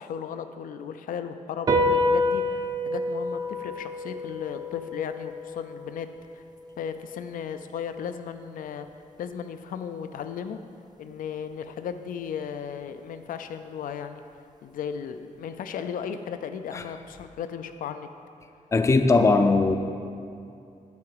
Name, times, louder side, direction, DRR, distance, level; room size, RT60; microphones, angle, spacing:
voice 1, 0.0-6.1 6.3-6.4 6.8-8.9 9.2-10.6 11.0-14.2 14.6-18.1, left 7 dB, 90° left, 9 dB, 0.5 m, -35 dB
sound 1, 1.7-8.4, left 1 dB, 30° right, 0.6 m, -29 dB
voice 2, 18.7-19.8, left 3 dB, 20° left, 7 dB, 0.4 m, -19 dB
10.5 x 4.7 x 7.8 m, 2.5 s
wide cardioid pair, 180°, 14 cm